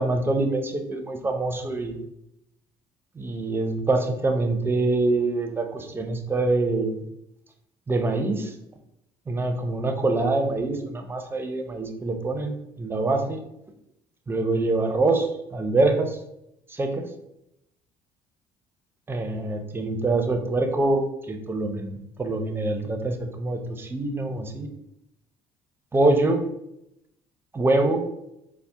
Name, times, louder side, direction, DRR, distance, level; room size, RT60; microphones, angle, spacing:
voice 1, 0.0-2.0 3.2-7.0 7.9-8.5 9.3-13.4 14.3-16.2 16.7-17.1 19.1-24.7 25.9-26.5 27.5-28.1, right 2 dB, 20° right, 5 dB, 0.6 m, -25 dB
4.0 x 2.1 x 3.6 m, 0.82 s
supercardioid pair, 85°, 11 cm